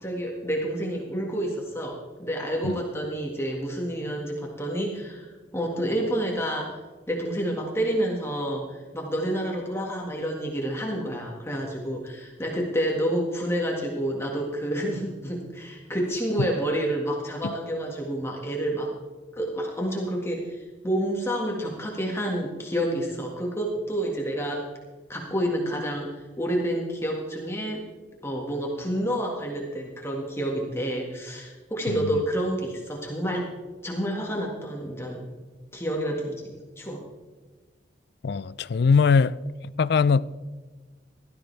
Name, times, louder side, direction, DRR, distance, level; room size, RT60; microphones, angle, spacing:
voice 1, 0.0-6.7 7.1-18.9 19.3-24.6 25.1-27.8 28.2-33.5 33.8-35.3 35.7-37.0, right 1 dB, 15° left, 1.8 m, -29 dB
voice 2, 31.9-32.2 38.2-39.4 39.6-40.3, left 5 dB, 65° left, 0.4 m, -22 dB
17.0 x 13.0 x 3.4 m
head